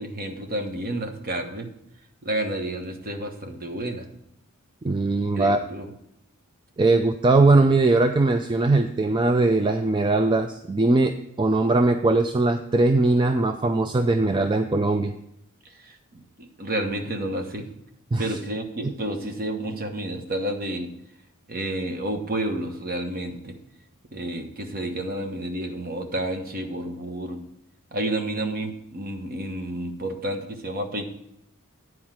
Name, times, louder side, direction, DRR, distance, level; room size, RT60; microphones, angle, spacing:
voice 1, 0.0-1.7 2.2-4.1 5.3-5.9 15.8-17.6 18.2-20.9 21.5-23.5 24.1-27.4 27.9-31.0, right 1 dB, 40° right, 5 dB, 1.1 m, -30 dB
voice 2, 4.8-5.6 6.8-15.1 18.1-18.4, right 2 dB, 20° right, 7 dB, 0.4 m, -20 dB
9.7 x 4.6 x 7.4 m, 0.78 s
head